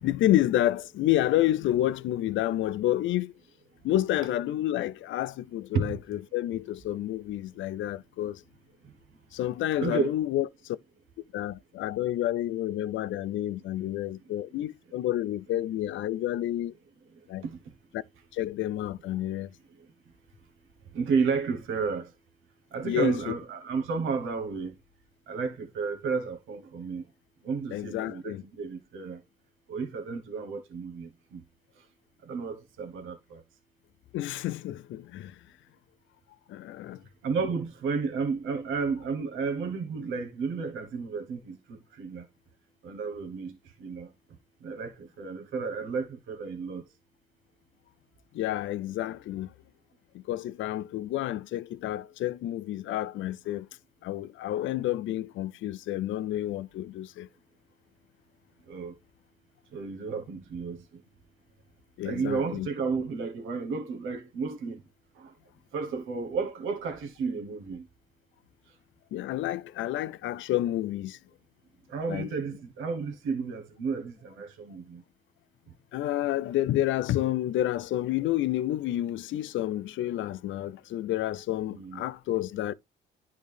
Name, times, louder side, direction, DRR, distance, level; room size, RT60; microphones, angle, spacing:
voice 1, 0.0-3.3 3.8-8.4 9.3-10.8 11.3-16.7 17.3-17.4 18.3-19.5 22.8-23.3 27.7-28.4 34.1-35.3 36.5-37.0 48.3-49.5 50.1-53.7 54.0-57.3 62.0-62.7 69.1-71.2 72.1-72.3 75.9-82.7, left 13 dB, 75° left, 0.5 m, -29 dB
voice 2, 9.8-10.1 20.9-22.1 22.7-24.7 25.3-27.0 27.4-29.2 29.7-31.4 32.3-33.4 37.2-41.6 42.0-42.2 42.8-43.5 43.8-44.1 44.6-46.8 58.7-58.9 59.7-60.8 62.0-64.8 65.7-67.8 71.9-75.0 81.7-82.0, right 5 dB, 85° right, 1.2 m, -32 dB
10.5 x 3.8 x 3.4 m
cardioid pair, 90°, 20 cm